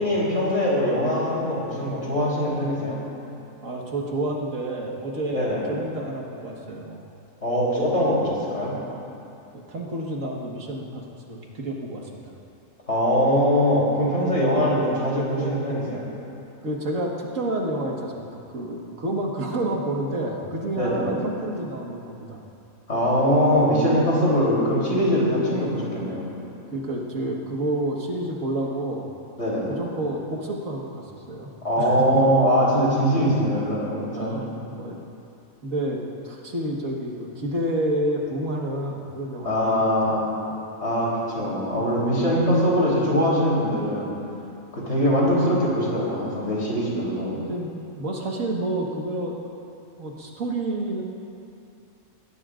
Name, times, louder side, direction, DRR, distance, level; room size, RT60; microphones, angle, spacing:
voice 1, 0.0-3.0 5.3-5.6 7.4-8.7 12.9-16.0 20.7-21.1 22.9-26.2 29.4-29.7 31.6-34.4 39.4-40.3 40.8-44.1 44.7-47.3, equal, 55° left, -6 dB, 3.9 m, -22 dB
voice 2, 3.6-7.0 9.5-12.3 16.6-18.3 18.5-22.4 24.0-24.2 26.7-29.1 29.7-31.5 31.8-32.2 34.1-35.0 35.6-40.2 40.5-40.6 47.5-49.4 50.0-51.0, right 1 dB, 65° right, -1 dB, 1.9 m, -29 dB
20.5 x 17.5 x 2.5 m, 2.7 s
omnidirectional pair, 1.5 m